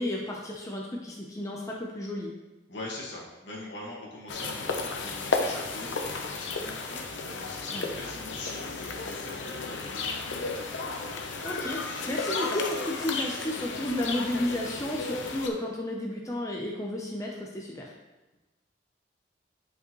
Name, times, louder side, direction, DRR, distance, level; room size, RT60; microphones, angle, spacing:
voice 1, 0.0-2.3 7.7-7.9 11.4-17.9, left 1 dB, 15° left, -2 dB, 0.7 m, -32 dB
voice 2, 2.7-10.5, left 2 dB, 70° left, -4 dB, 1.7 m, -42 dB
sound 1, 4.3-15.5, left 3 dB, 85° left, 0.8 m, -33 dB
8.5 x 5.3 x 3.1 m, 1.1 s
head